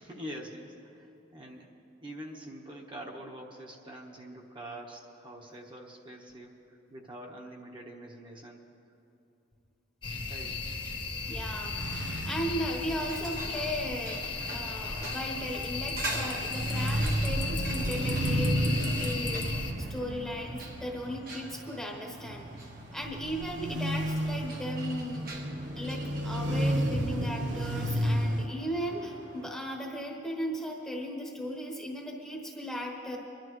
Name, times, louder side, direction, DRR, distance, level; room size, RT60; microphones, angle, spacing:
voice 1, 0.0-1.7 2.0-8.7 10.3-10.5, right 1 dB, 25° right, -1 dB, 1.2 m, -45 dB
sound 1, 10.0-19.7, left 3 dB, 30° left, 1.1 m, -35 dB
sound 2, 11.2-28.5, right 1 dB, 80° right, 0.9 m, -33 dB
voice 2, 11.3-22.5 22.9-25.4 25.7-33.2, equal, 5° left, -1 dB, 1.1 m, -36 dB
sound 3, 12.3-29.7, right 2 dB, 55° right, 1.5 m, -44 dB
23.0 x 11.5 x 3.1 m, 2.7 s
head